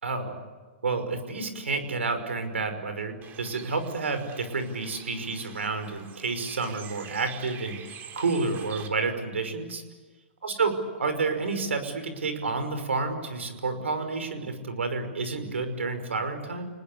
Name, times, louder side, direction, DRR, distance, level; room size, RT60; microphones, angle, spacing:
voice 1, 0.0-0.5 0.8-9.8 10.4-16.7, right 4 dB, 85° right, 9 dB, 5.5 m, -30 dB
Bird, 3.2-8.9, right 8 dB, 30° right, 3.7 m, -45 dB
29.5 x 20.5 x 8.6 m, 1.3 s
hypercardioid pair, 125°, 6 cm